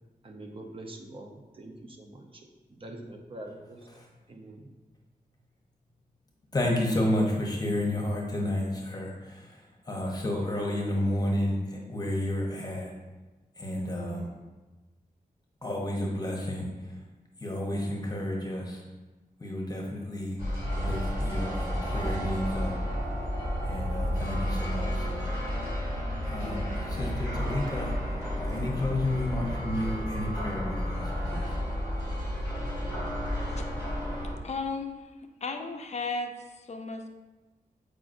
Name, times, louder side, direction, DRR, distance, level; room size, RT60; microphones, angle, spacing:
voice 1, 0.2-2.4 2.7-3.9 4.3-4.7, right 1 dB, 35° right, 2 dB, 0.7 m, -44 dB
voice 2, 6.5-12.9 13.6-14.3 15.6-17.0 17.4-18.8 19.4-22.8 23.6-25.4 26.0-31.6, left 1 dB, 25° left, -1 dB, 0.9 m, -31 dB
sound 1, 20.4-34.3, equal, 20° right, 1.8 m, -31 dB
voice 3, 34.4-35.0 35.4-37.1, left 3 dB, 45° left, 4 dB, 0.5 m, -34 dB
7.5 x 4.9 x 2.6 m, 1.2 s
wide cardioid pair, 170°, 15 cm